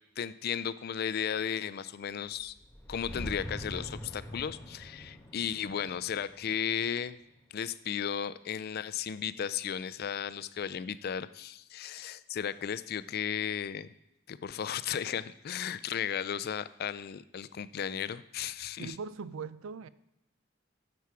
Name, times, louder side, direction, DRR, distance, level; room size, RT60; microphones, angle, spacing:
voice 1, 0.2-2.5 2.9-7.2 7.5-13.9 14.3-19.0, left 8 dB, 50° left, 16 dB, 0.4 m, -35 dB
sound 1, 2.4-7.5, equal, 10° left, 1.2 m, -44 dB
voice 2, 18.8-19.9, right 5 dB, 90° right, 17 dB, 0.4 m, -40 dB
10.5 x 7.0 x 4.8 m, 0.84 s
head